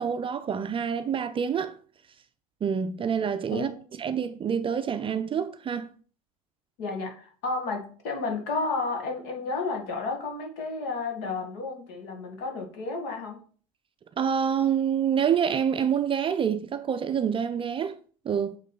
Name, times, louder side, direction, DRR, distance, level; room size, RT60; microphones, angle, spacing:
voice 1, 0.0-1.7 2.6-5.9 14.2-17.9 18.2-18.6, right 7 dB, 30° right, 0.5 m, -27 dB
voice 2, 3.5-3.8 6.8-13.4, left 3 dB, 60° left, 1.9 m, -32 dB
8.1 x 3.3 x 4.1 m
figure-of-eight pair, 60°, 19 cm